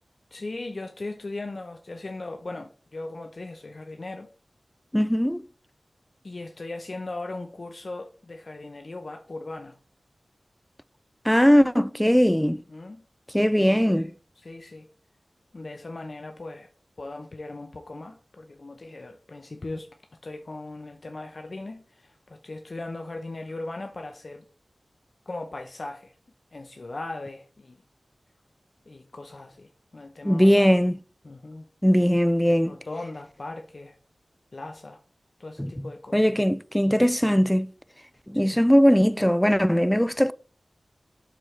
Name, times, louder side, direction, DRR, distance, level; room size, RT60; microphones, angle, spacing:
voice 1, 0.3-4.3 6.2-9.8 12.4-13.0 13.4-14.9 15.5-16.7 17.0-19.9 20.2-24.4 25.3-26.1 26.5-27.8 28.9-30.7 31.2-31.7 32.5-34.0 34.5-35.0 35.4-36.2 38.3-38.6, left 2 dB, 55° left, 0.7 m, -38 dB
voice 2, 4.9-5.4 11.3-12.6 13.3-14.1 30.2-30.9 31.8-32.7 35.6-35.9 36.1-37.7 38.3-40.3, equal, 5° left, 0.3 m, -20 dB
11.0 x 4.4 x 3.3 m
wide cardioid pair, 75°, 0 cm